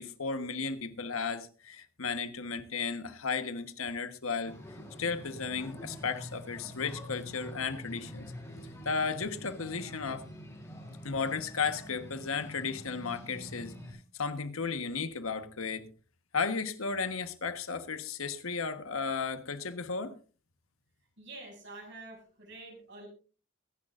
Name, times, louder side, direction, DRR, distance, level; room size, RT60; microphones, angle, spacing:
voice 1, 0.0-4.6 5.0-8.3 8.8-10.3 11.0-15.8 16.3-20.2, left 5 dB, 85° left, 1.3 m, -34 dB
sound 1, 4.4-13.9, equal, 15° left, 5.5 m, -46 dB
voice 2, 21.2-23.1, right 2 dB, 60° right, 6.8 m, -47 dB
23.0 x 11.0 x 2.5 m
head